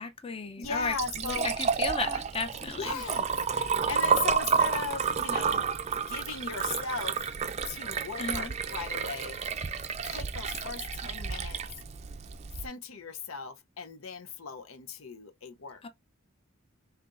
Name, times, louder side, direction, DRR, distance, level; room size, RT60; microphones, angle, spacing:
voice 1, 0.0-3.0 8.2-8.6 15.8-15.9, left 4 dB, 25° left, 0.6 m, -35 dB
voice 2, 0.6-1.5 2.8-5.7 6.0-7.2 7.7-9.4 10.0-11.6 12.6-15.9, left 5 dB, 75° left, 0.7 m, -38 dB
Liquid, 0.6-12.7, right 6 dB, 30° right, 0.4 m, -31 dB
5.7 x 3.3 x 2.5 m
head